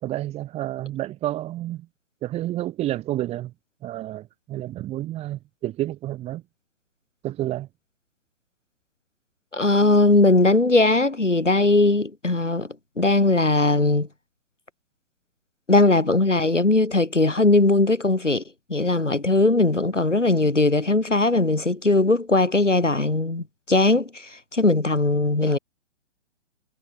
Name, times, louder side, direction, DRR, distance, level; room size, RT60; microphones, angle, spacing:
voice 1, 0.0-1.9 2.2-3.5 3.8-6.4 7.2-7.7, right 14 dB, 15° right, 2.6 m, -30 dB
voice 2, 9.5-12.7 13.0-14.1 15.7-18.4 18.7-25.6, left 2 dB, 85° left, 3.8 m, -19 dB
figure-of-eight pair, 125°, 36 cm